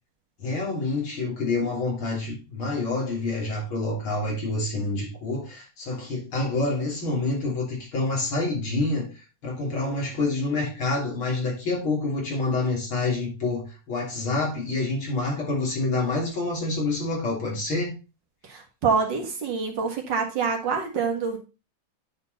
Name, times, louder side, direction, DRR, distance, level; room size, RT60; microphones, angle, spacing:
voice 1, 0.4-18.0, left 2 dB, 80° left, 3.9 m, -27 dB
voice 2, 18.4-21.4, right 5 dB, 60° right, 2.2 m, -26 dB
9.5 x 4.5 x 4.0 m
omnidirectional pair, 2.2 m